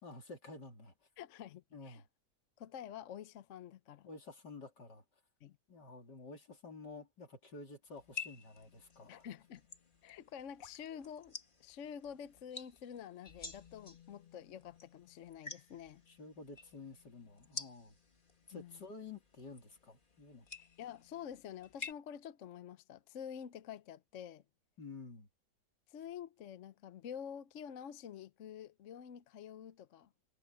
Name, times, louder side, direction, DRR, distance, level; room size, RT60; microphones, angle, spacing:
voice 1, 0.0-0.9 1.7-2.0 4.0-5.0 5.7-9.3 16.1-18.0 18.5-20.5 24.8-25.3, left 3 dB, 75° left, 3.8 m, -51 dB
voice 2, 1.2-2.0 2.6-4.1 5.4-5.6 9.1-9.6 10.0-11.3 11.6-16.0 18.5-18.8 20.8-24.4 25.9-30.1, left 8 dB, 55° left, 0.9 m, -48 dB
sound 1, 8.0-21.9, left 5 dB, 30° left, 1.9 m, -51 dB
omnidirectional pair, 1.8 m